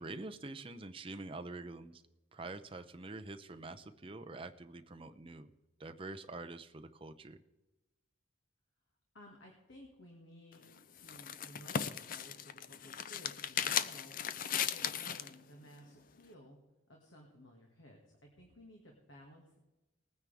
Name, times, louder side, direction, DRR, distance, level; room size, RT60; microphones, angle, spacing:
voice 1, 0.0-2.0 2.3-5.5 5.8-7.4, right 2 dB, 25° right, 7 dB, 0.6 m, -46 dB
voice 2, 9.1-14.2 14.7-16.6 16.9-19.6, equal, 75° left, 0 dB, 2.1 m, -57 dB
sound 1, 10.5-15.3, left 8 dB, 45° left, 0.5 m, -37 dB
20.0 x 9.6 x 3.5 m, 1.1 s
head